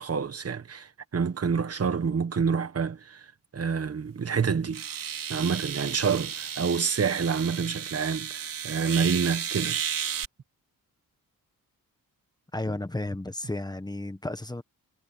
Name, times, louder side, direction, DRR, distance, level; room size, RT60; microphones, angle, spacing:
voice 1, 0.0-3.3 3.5-4.8 5.3-9.8, right 6 dB, 45° right, 1.4 m, -28 dB
sound 1, 3.9-4.0 4.7-10.3, right 8 dB, 70° right, 3.3 m, -33 dB
voice 2, 12.5-14.6, left 2 dB, 10° left, 1.5 m, -33 dB
cardioid pair, 105°, 34 cm